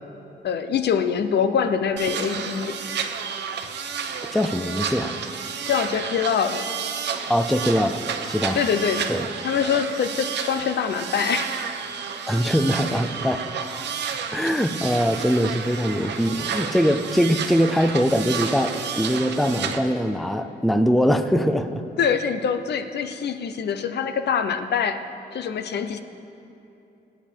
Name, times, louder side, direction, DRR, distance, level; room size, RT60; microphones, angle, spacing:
voice 1, 0.4-2.8 5.7-6.6 8.5-9.1 9.4-11.6 22.0-25.0 25.3-26.0, left 7 dB, 65° left, 9 dB, 0.7 m, -24 dB
sound 1, 2.0-19.8, right 6 dB, 75° right, 0.9 m, -31 dB
voice 2, 4.3-5.2 7.3-8.6 9.1-9.2 12.3-13.5 14.3-21.8, equal, ahead, 9 dB, 0.5 m, -22 dB
20.5 x 9.1 x 4.5 m, 2.8 s
wide cardioid pair, 135°, 18 cm